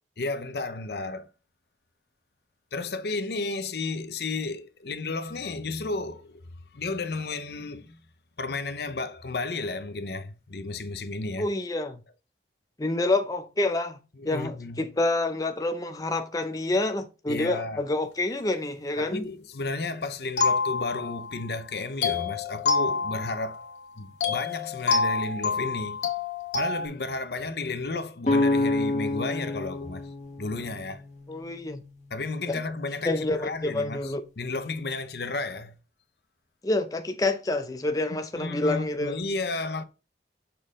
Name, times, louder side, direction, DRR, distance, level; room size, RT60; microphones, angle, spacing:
voice 1, 0.2-1.3 2.7-6.4 6.7-8.0 8.4-11.5 14.2-14.8 17.3-17.8 19.0-23.7 24.0-26.0 26.5-30.1 30.4-31.0 32.1-35.8 38.3-39.8, left 3 dB, 65° left, 0.7 m, -33 dB
voice 2, 11.4-12.0 12.8-14.0 14.2-19.3 31.3-31.8 32.5-32.6 33.0-34.2 36.6-39.2, left 2 dB, 20° left, 0.5 m, -28 dB
sound 1, 20.4-21.4 22.0-23.7 24.2-26.9, left 4 dB, 85° left, 1.9 m, -27 dB
sound 2, 28.2-32.0, left 2 dB, 45° left, 1.3 m, -28 dB
6.8 x 4.4 x 3.6 m
head